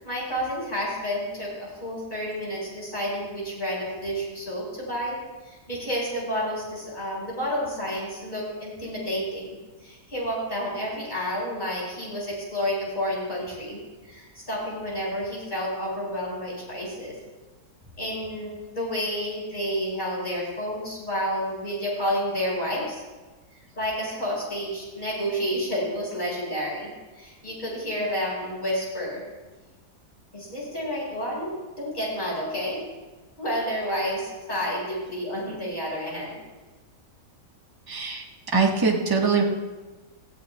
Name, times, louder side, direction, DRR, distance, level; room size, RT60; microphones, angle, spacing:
voice 1, 0.0-9.5 9.8-17.2 18.0-23.0 23.8-29.2 30.3-32.8 33.4-36.4, equal, 25° left, -5 dB, 5.2 m, -30 dB
voice 2, 37.9-38.2 38.5-39.4, right 4 dB, 15° right, -1 dB, 1.2 m, -22 dB
18.0 x 14.5 x 2.3 m, 1.2 s
omnidirectional pair, 1.9 m